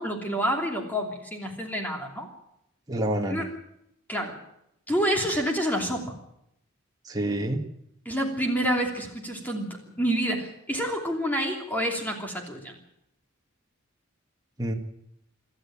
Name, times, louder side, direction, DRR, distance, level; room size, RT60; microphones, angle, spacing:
voice 1, 0.0-2.3 3.3-3.5 4.1-4.3 4.9-6.1 8.1-12.8, equal, 10° left, 1 dB, 3.0 m, -28 dB
voice 2, 2.9-3.5 7.0-7.6 14.6-14.7, right 1 dB, 20° right, 1 dB, 2.0 m, -27 dB
26.0 x 13.5 x 8.8 m, 0.79 s
head